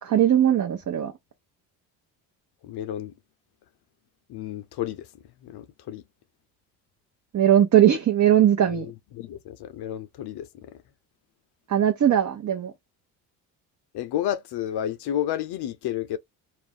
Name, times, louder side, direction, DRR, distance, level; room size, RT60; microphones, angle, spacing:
voice 1, 0.0-1.1 7.3-8.9 11.7-12.7, right 10 dB, 40° right, 0.7 m, -19 dB
voice 2, 2.6-3.1 4.3-6.0 8.7-10.8 13.9-16.2, left 11 dB, 60° left, 0.6 m, -31 dB
2.4 x 2.1 x 3.5 m
supercardioid pair, 60°, 45 cm